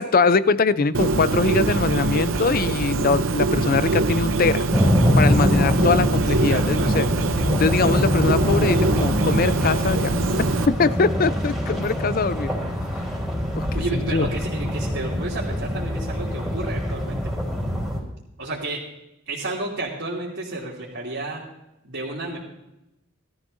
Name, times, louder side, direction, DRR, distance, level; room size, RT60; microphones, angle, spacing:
voice 1, 0.0-4.6 5.2-7.1 7.6-10.2 10.8-12.5 13.5-13.7 13.9-14.3, left 4 dB, 45° left, 15 dB, 0.5 m, -22 dB
Bird, 0.9-10.7, right 3 dB, 85° right, 0.7 m, -23 dB
sound 1, 4.7-18.0, equal, 5° right, 3.4 m, -24 dB
voice 2, 6.2-7.0 13.7-17.3 18.4-18.8 19.3-21.4 21.8-22.4, right 2 dB, 65° right, -6 dB, 2.7 m, -31 dB
18.5 x 13.5 x 2.7 m, 0.90 s
head